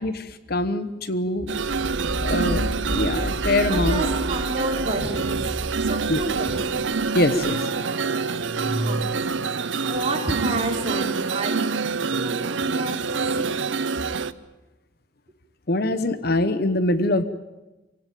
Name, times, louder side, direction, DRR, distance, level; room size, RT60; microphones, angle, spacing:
voice 1, 0.0-1.5 2.2-2.7 2.9-4.0 6.1-6.2 7.1-7.6 15.7-17.2, left 1 dB, 50° left, 12 dB, 1.0 m, -23 dB
sound 1, 1.4-7.5, equal, 10° left, 5.8 m, -35 dB
sound 2, 1.5-14.3, right 5 dB, 70° right, 0.7 m, -26 dB
sound 3, 1.8-2.7 3.6-9.6, equal, 25° left, 6.9 m, -34 dB
voice 2, 3.7-6.9 8.8-9.3 9.8-11.7 12.1-13.5, right 2 dB, 30° right, 0 dB, 4.1 m, -30 dB
25.5 x 17.0 x 9.2 m, 1.1 s
head